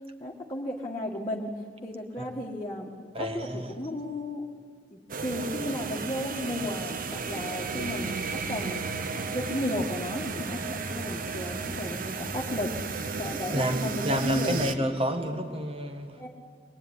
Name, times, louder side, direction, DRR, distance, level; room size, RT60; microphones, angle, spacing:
voice 1, 0.2-1.5 1.8-2.9 3.3-3.5 3.7-4.4 4.9-7.0 7.2-8.8 9.1-14.9 16.2-16.3, left 1 dB, 25° left, 1.8 m, -34 dB
voice 2, 3.1-3.8 13.5-16.3, equal, 35° right, 1.9 m, -30 dB
sound 1, 5.1-14.7, right 4 dB, 55° right, 1.1 m, -34 dB
23.5 x 21.5 x 9.9 m
head